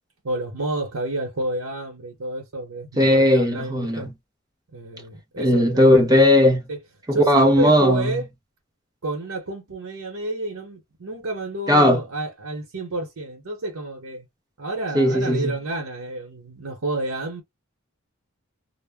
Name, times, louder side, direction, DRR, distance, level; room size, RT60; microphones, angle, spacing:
voice 1, 0.2-4.1 4.7-6.0 6.7-6.8 7.1-8.3 9.0-14.3 14.6-17.4, right 2 dB, 85° right, 0.8 m, -30 dB
voice 2, 3.0-4.0 5.4-6.6 7.1-8.2 11.7-12.0 14.9-15.5, left 1 dB, 20° right, 0.6 m, -17 dB
2.1 x 2.0 x 3.4 m
head